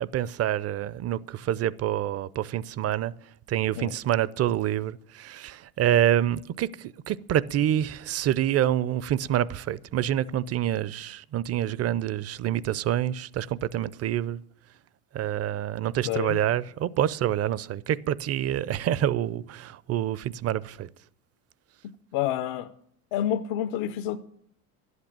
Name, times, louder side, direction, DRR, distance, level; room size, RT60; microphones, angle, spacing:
voice 1, 0.0-3.1 3.5-14.4 15.1-20.9, right 11 dB, 35° right, 0.6 m, -27 dB
voice 2, 16.0-16.4 22.1-22.7 23.1-24.2, left 11 dB, 65° left, 0.8 m, -28 dB
12.0 x 8.2 x 8.6 m
hypercardioid pair, 75°, 44 cm